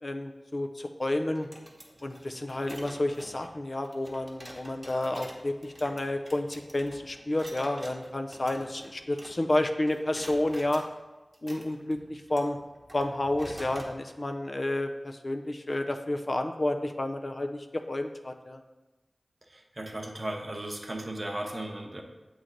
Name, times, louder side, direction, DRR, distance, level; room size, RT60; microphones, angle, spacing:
voice 1, 0.0-1.5 2.0-10.8 11.4-12.6 12.9-18.6, left 1 dB, 50° left, 5 dB, 0.4 m, -30 dB
sound 1, 1.3-9.6 9.9-10.9 11.3-14.0, right 1 dB, 20° right, 1.0 m, -48 dB
voice 2, 19.5-22.0, right 1 dB, 45° right, 2 dB, 0.8 m, -36 dB
7.8 x 3.2 x 3.8 m, 1.1 s
wide cardioid pair, 50°, 0 cm